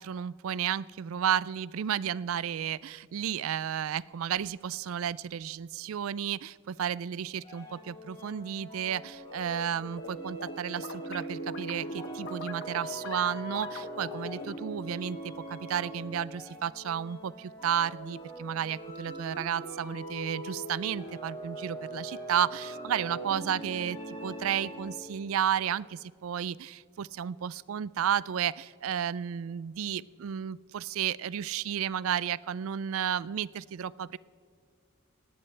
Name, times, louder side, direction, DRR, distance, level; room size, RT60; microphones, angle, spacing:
voice 1, 0.0-34.2, right 9 dB, 70° right, 21 dB, 0.4 m, -32 dB
sound 1, 7.4-25.1, right 1 dB, 25° left, 5.0 m, -41 dB
sound 2, 9.5-10.1 10.4-14.6, left 4 dB, 60° left, 1.2 m, -43 dB
19.0 x 17.5 x 3.3 m, 2.2 s
head